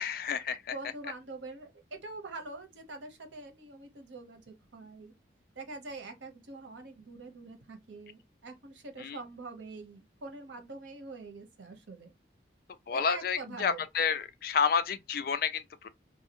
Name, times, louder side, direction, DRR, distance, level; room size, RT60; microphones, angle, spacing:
voice 1, 0.0-0.6 9.0-9.2 12.9-15.9, left 6 dB, 55° left, 0.3 m, -30 dB
voice 2, 0.7-5.1 5.6-12.1 12.9-13.8, right 3 dB, 90° right, 0.8 m, -44 dB
2.7 x 2.2 x 2.8 m
head